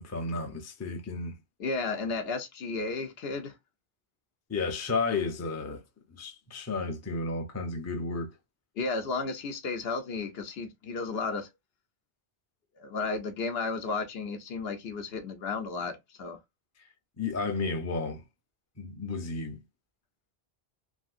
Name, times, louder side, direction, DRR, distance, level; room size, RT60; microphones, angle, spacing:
voice 1, 0.0-1.4 4.5-5.8 6.1-8.3 17.2-18.2 18.8-19.6, left 3 dB, 20° left, 0.5 m, -32 dB
voice 2, 1.6-3.5 8.8-11.5 12.8-16.4, left 4 dB, 70° left, 0.9 m, -33 dB
3.3 x 2.6 x 2.4 m
omnidirectional pair, 1.1 m